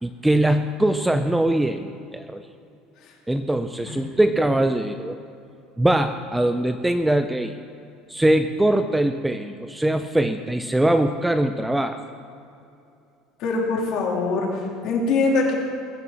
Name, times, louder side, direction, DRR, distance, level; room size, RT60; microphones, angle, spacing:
voice 1, 0.0-2.4 3.3-5.2 5.8-7.5 8.1-12.0, right 1 dB, 5° right, 9 dB, 0.4 m, -22 dB
voice 2, 13.4-15.5, left 3 dB, 50° left, -1 dB, 3.0 m, -23 dB
21.0 x 7.1 x 6.9 m, 2.6 s
cardioid pair, 160°, 0 cm